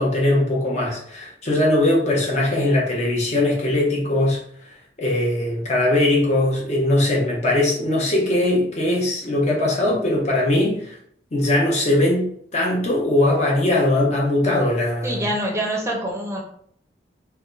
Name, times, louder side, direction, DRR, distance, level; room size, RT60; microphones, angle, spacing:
voice 1, 0.0-11.0 11.3-15.3, left 1 dB, 40° left, -2 dB, 0.8 m, -20 dB
voice 2, 15.0-16.4, right 1 dB, 15° right, -1 dB, 0.6 m, -25 dB
2.8 x 2.2 x 3.7 m, 0.64 s
head